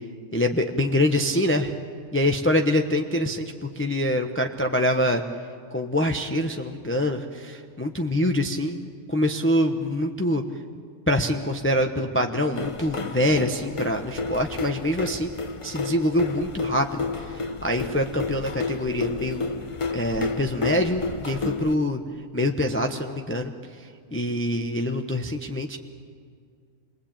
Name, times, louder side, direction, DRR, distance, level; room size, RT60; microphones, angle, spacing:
voice 1, 0.3-1.7 2.1-5.2 5.7-8.8 9.1-10.4 11.1-15.3 15.6-19.5 19.9-22.0 22.3-23.5 24.1-25.8, left 1 dB, 10° left, 4 dB, 0.9 m, -25 dB
sound 1, 12.5-21.7, left 4 dB, 30° left, 0.7 m, -31 dB
27.5 x 22.5 x 8.9 m, 2.1 s
omnidirectional pair, 1.3 m